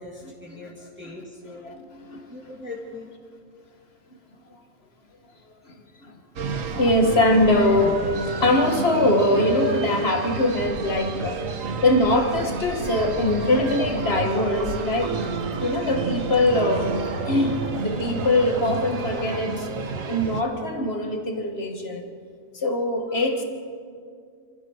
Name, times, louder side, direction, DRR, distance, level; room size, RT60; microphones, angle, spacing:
voice 1, 0.0-1.6 2.3-3.1, left 2 dB, 10° right, -4 dB, 2.4 m, -40 dB
voice 2, 1.6-2.3 6.0-8.0 8.4-11.4 11.8-15.2 15.6-16.9 17.3-19.7 20.1-22.0 22.5-23.4, left 1 dB, 50° left, 4 dB, 2.2 m, -22 dB
sound 1, 6.4-20.4, right 4 dB, 75° right, 1.6 m, -30 dB
sound 2, 13.2-19.4, right 1 dB, 45° right, 3.3 m, -38 dB
26.0 x 15.5 x 6.6 m, 2.2 s
omnidirectional pair, 1.4 m